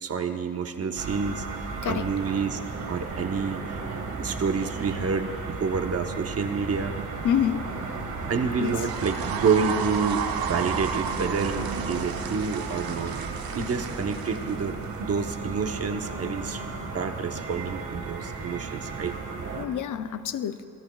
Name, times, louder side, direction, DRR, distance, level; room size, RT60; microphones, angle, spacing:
voice 1, 0.0-2.6 2.9-7.0 8.3-13.2 13.5-16.6 16.9-19.2, right 5 dB, 45° right, 6 dB, 0.8 m, -28 dB
sound 1, 1.0-19.7, right 4 dB, 60° right, 1.7 m, -35 dB
voice 2, 1.8-2.1 7.2-7.7 8.6-8.7 19.6-20.6, left 9 dB, 60° left, 11 dB, 0.5 m, -27 dB
sound 2, 8.6-15.0, right 8 dB, 90° right, 0.8 m, -33 dB
26.0 x 17.0 x 2.3 m, 2.5 s
wide cardioid pair, 160°, 35 cm